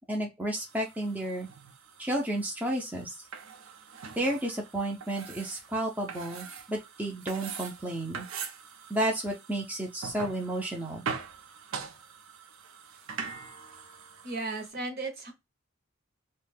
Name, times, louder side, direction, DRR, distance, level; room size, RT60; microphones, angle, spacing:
voice 1, 0.1-1.5 2.0-3.1 4.2-8.3 8.9-11.0, right 1 dB, 10° right, 0.4 m, -32 dB
sound 1, 0.6-14.7, right 5 dB, 75° right, 0.5 m, -43 dB
voice 2, 14.2-15.3, right 3 dB, 45° right, 0.8 m, -35 dB
2.4 x 2.2 x 3.2 m
head